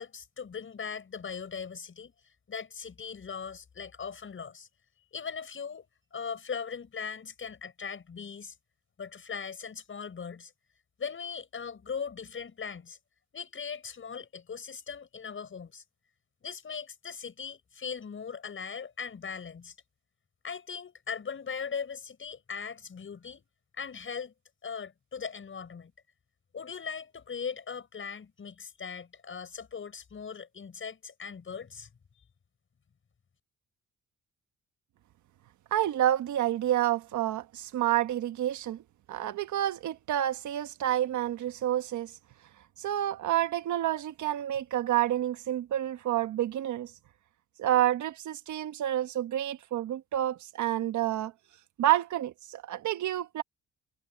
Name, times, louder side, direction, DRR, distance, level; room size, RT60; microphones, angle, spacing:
voice 1, 0.0-2.1 2.5-4.7 5.1-5.9 6.1-8.5 9.0-10.5 11.0-13.0 13.3-15.8 16.4-19.7 20.4-23.4 23.8-24.3 24.6-25.9 26.5-31.9, left 6 dB, 40° left, 6.3 m, -39 dB
voice 2, 35.7-38.8 39.1-42.1 42.8-46.9 47.6-51.3 51.8-53.4, right 12 dB, 75° right, 1.4 m, -29 dB
cardioid pair, 90°, 30 cm